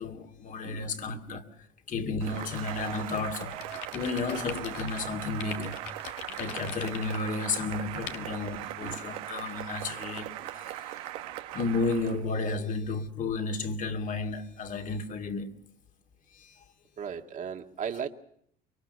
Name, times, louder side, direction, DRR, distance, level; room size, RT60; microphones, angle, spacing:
voice 1, 0.0-1.5 1.9-3.6 3.9-5.8 6.3-11.0 11.5-15.5 16.3-16.6, left 3 dB, 40° left, 2.5 m, -32 dB
voice 2, 0.6-1.4 1.9-2.5 5.6-5.8 8.8-9.0 10.4-10.5 17.0-18.1, right 7 dB, 40° right, 1.9 m, -39 dB
Cheering / Applause, 2.2-12.3, right 14 dB, 90° right, 1.4 m, -39 dB
sound 1, 3.4-5.0 5.4-7.2 8.1-8.2, left 10 dB, 75° left, 1.7 m, -41 dB
25.0 x 23.0 x 5.4 m
supercardioid pair, 100°, 19 cm